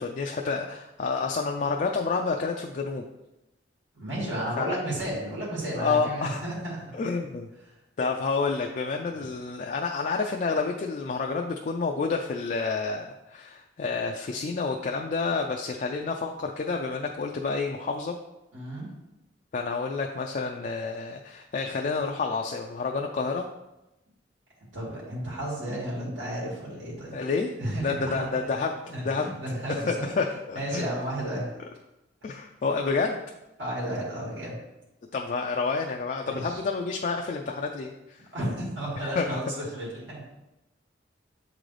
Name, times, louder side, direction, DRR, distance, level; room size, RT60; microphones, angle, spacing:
voice 1, 0.0-3.0 4.6-4.8 5.7-6.4 6.9-7.5 8.0-18.2 19.5-23.5 27.1-27.5 27.8-29.3 29.9-30.9 32.2-33.2 35.1-38.2 39.0-39.3, left 4 dB, 45° left, 2 dB, 0.4 m, -29 dB
voice 2, 3.9-6.9 8.9-9.0 18.5-18.9 24.7-27.2 27.6-28.3 28.9-30.1 30.5-31.5 33.6-34.6 36.2-36.6 38.3-40.2, right 1 dB, 85° right, -5 dB, 2.1 m, -33 dB
7.8 x 3.8 x 3.3 m, 0.96 s
head